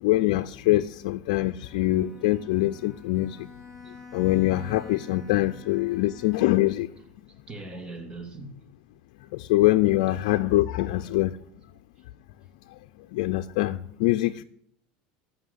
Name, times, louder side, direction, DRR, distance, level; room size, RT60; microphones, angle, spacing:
voice 1, 0.0-3.5 4.1-6.9 9.3-11.3 13.1-14.4, left 17 dB, 75° left, 0.5 m, -24 dB
Bowed string instrument, 1.6-6.9, left 4 dB, 5° right, 6.1 m, -48 dB
voice 2, 7.3-8.6 11.0-11.1, right 3 dB, 25° right, 2.5 m, -41 dB
14.0 x 5.8 x 9.6 m
supercardioid pair, 115°, 4 cm